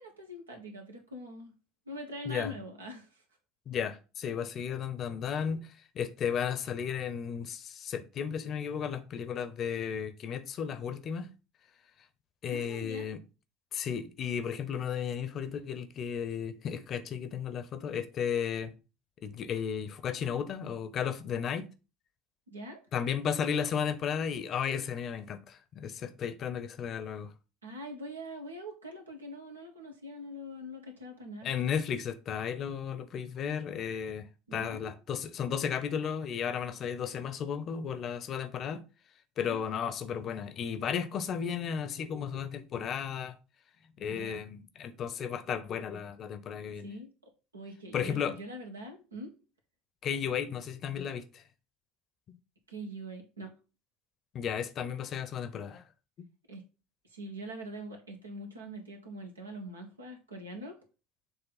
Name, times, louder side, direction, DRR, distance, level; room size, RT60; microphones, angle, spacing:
voice 1, 0.0-1.5 1.9-3.2 12.5-13.1 22.5-22.8 27.6-31.5 34.5-34.9 39.4-39.6 44.1-44.4 46.8-47.1 47.5-49.3 52.7-53.5 56.5-56.6 57.1-60.8, equal, 90° right, 1.4 m, -43 dB
voice 2, 3.7-11.3 12.4-13.2 13.7-18.7 19.2-21.7 22.9-27.3 31.4-38.8 39.4-43.3 44.0-46.9 47.9-48.4 50.0-51.4 54.3-55.8, left 7 dB, 45° left, 0.8 m, -34 dB
7.1 x 3.3 x 4.1 m
hypercardioid pair, 70°, 0 cm